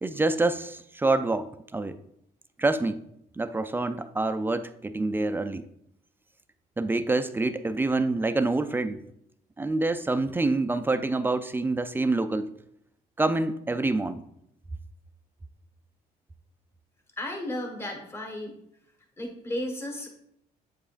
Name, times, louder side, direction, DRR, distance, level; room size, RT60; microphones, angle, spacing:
voice 1, 0.0-2.0 2.6-3.0 3.4-5.7 6.8-9.0 9.6-12.5 13.2-14.2, right 2 dB, 10° right, 10 dB, 0.3 m, -26 dB
voice 2, 17.2-18.6 19.2-20.1, left 1 dB, 15° left, 2 dB, 1.3 m, -34 dB
8.0 x 4.9 x 2.5 m, 0.75 s
cardioid pair, 110°, 17 cm